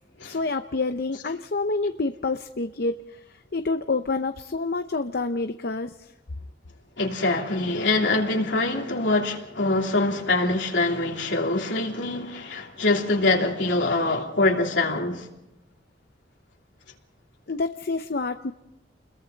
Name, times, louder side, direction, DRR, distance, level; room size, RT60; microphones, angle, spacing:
voice 1, 0.3-2.9 3.5-5.9 17.5-18.5, left 3 dB, 55° left, 0.7 m, -27 dB
voice 2, 7.0-15.3, left 2 dB, 75° left, 3.2 m, -24 dB
29.5 x 22.0 x 4.0 m
head